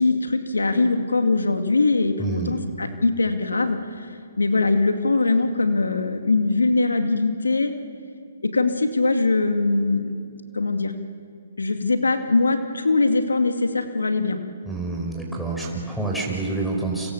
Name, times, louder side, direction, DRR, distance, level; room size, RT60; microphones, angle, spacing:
voice 1, 0.0-4.1 4.4-7.7 8.4-10.3 10.5-10.9 11.6-14.4, left 3 dB, 90° left, 7 dB, 2.3 m, -22 dB
voice 2, 2.2-2.6 14.7-17.1, right 3 dB, ahead, 0 dB, 4.9 m, -27 dB
29.5 x 26.0 x 7.2 m, 2.2 s
hypercardioid pair, 135°, 0 cm